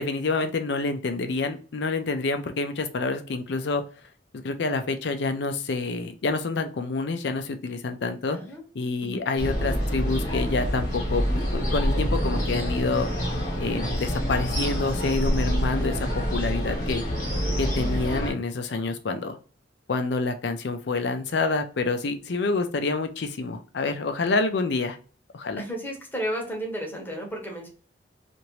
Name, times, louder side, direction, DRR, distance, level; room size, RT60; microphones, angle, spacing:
voice 1, 0.0-3.8 4.3-8.4 8.7-13.1 13.6-17.0 17.6-19.4 19.9-25.0 25.3-25.6, left 3 dB, 65° left, 8 dB, 0.5 m, -27 dB
voice 2, 8.3-8.6 9.0-9.2 25.6-27.7, equal, 10° left, -1 dB, 0.9 m, -33 dB
sound 1, 9.4-18.3, equal, 45° left, 1.1 m, -26 dB
2.8 x 2.5 x 3.0 m, 0.39 s
head